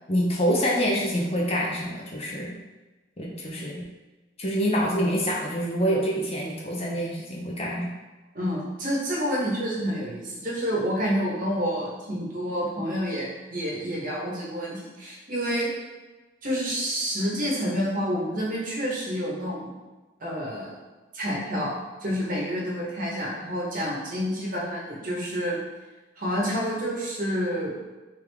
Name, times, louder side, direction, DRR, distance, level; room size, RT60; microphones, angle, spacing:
voice 1, 0.1-2.5 3.2-3.8 4.4-7.9, equal, 30° left, -3 dB, 0.6 m, -26 dB
voice 2, 8.3-15.7 16.4-19.7 20.2-20.8 21.1-21.7 22.0-25.6 26.2-27.8, equal, 45° right, -4 dB, 1.1 m, -28 dB
3.4 x 3.4 x 3.4 m, 1.2 s
head